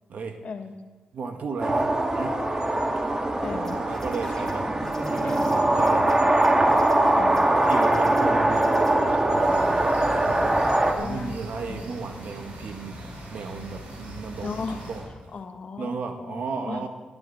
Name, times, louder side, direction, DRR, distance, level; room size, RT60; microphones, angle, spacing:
voice 1, 0.4-0.7 3.4-3.8 5.2-5.5 7.1-7.5 11.0-11.4 11.7-11.8 14.4-14.9 15.3-16.9, left 4 dB, 60° left, 7 dB, 1.3 m, -36 dB
voice 2, 1.1-2.4 3.8-4.7 5.0-6.6 7.7-9.8 10.3-10.6 10.9-13.0 13.3-15.1 15.8-16.9, right 4 dB, 75° right, 5 dB, 1.7 m, -34 dB
sound 1, 1.6-10.9, right 1 dB, 25° right, 1.6 m, -22 dB
sound 2, 3.4-10.7, equal, 15° left, 3.9 m, -46 dB
sound 3, 9.3-15.0, equal, 90° right, 5.2 m, -40 dB
19.0 x 12.0 x 4.3 m, 1.3 s
cardioid pair, 75°, 3 cm